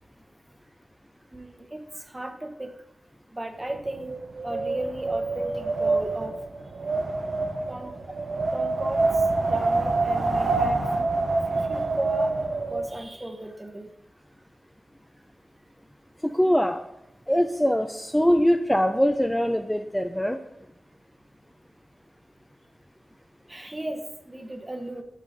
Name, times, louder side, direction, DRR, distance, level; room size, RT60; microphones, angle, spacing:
voice 1, 1.3-2.7 3.3-4.1 4.4-6.4 7.7-7.9 8.5-11.1 11.5-12.4 12.7-13.9 23.5-25.0, right 1 dB, 25° right, 5 dB, 0.9 m, -36 dB
Wind, 3.7-12.9, right 3 dB, 65° right, 0.7 m, -26 dB
voice 2, 16.2-16.8 17.3-20.4, equal, 5° left, 6 dB, 0.4 m, -22 dB
8.2 x 5.5 x 2.6 m, 0.87 s
cardioid pair, 55°, 0 cm